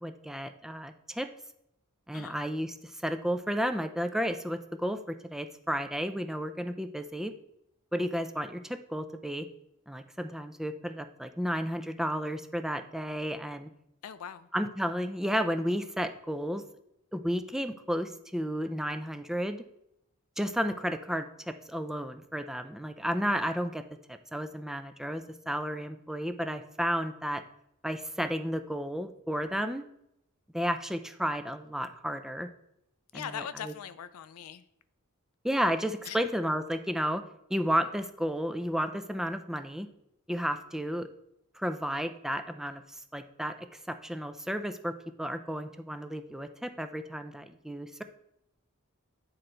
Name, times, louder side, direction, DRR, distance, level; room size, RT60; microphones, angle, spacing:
voice 1, 0.0-1.3 2.1-7.3 7.9-9.5 9.9-13.7 14.5-16.6 17.1-19.6 20.4-23.8 24.1-27.4 27.8-29.8 30.5-32.5 33.1-33.7 35.4-37.2 37.5-39.9 40.3-41.1 41.6-43.5 43.9-48.0, equal, ahead, 8 dB, 0.4 m, -32 dB
voice 2, 14.0-14.5 33.1-34.6 36.0-36.2, left 8 dB, 75° left, 13 dB, 0.4 m, -40 dB
9.6 x 3.9 x 4.4 m, 0.78 s
head